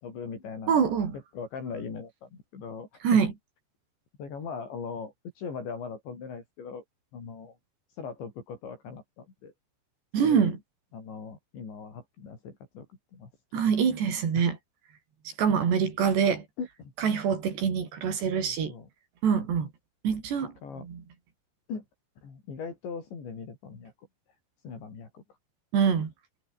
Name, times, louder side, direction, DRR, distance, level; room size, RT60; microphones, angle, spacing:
voice 1, 0.0-0.8 1.3-3.0 4.2-6.8 7.1-7.6 8.0-9.5 10.2-10.6 10.9-13.3 13.7-13.8 14.1-14.2 16.6-16.9 18.2-18.9 20.4-20.9 21.7-21.9 22.2-23.9 24.6-25.2, left 5 dB, 80° left, 8.7 m, -40 dB
voice 2, 0.7-1.1 3.0-3.3 10.1-10.6 13.5-14.6 15.4-16.5 17.0-18.7 19.2-19.7 20.0-21.0 25.7-26.1, right 7 dB, 70° right, 6.3 m, -25 dB
omnidirectional pair, 5.1 m